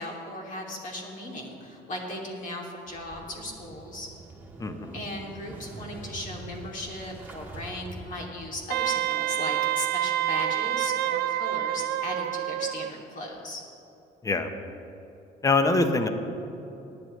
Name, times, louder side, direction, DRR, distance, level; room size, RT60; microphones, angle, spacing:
voice 1, 0.0-4.1 4.9-13.6, left 1 dB, 50° left, -1 dB, 2.8 m, -37 dB
Motorcycle / Engine starting, 2.9-8.7, right 2 dB, 10° right, 1.8 m, -44 dB
voice 2, 4.6-5.0 14.2-14.5 15.4-16.1, left 3 dB, 20° left, 7 dB, 1.0 m, -24 dB
Wind instrument woodwind instrument, 8.7-12.9, right 13 dB, 70° right, 0.4 m, -27 dB
19.0 x 10.5 x 3.3 m, 2.9 s
cardioid pair, 110°, 17 cm